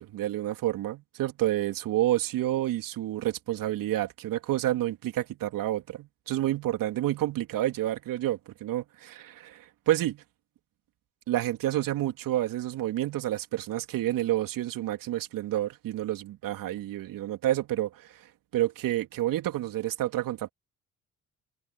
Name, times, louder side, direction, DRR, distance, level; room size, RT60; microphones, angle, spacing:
voice 1, 0.0-10.2 11.3-18.3 18.5-20.5, right 14 dB, 65° right, 3.3 m, -29 dB
hypercardioid pair, 50°, 35 cm